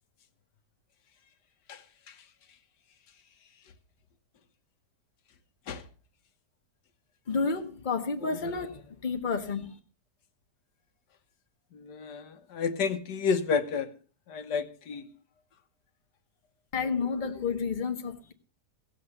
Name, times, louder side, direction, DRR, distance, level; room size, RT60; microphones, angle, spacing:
voice 1, 7.3-9.8 16.7-18.3, left 4 dB, 30° left, 1.4 m, -30 dB
voice 2, 11.7-13.9 14.3-15.0, left 5 dB, 85° left, 1.7 m, -30 dB
17.0 x 7.7 x 6.6 m
omnidirectional pair, 1.7 m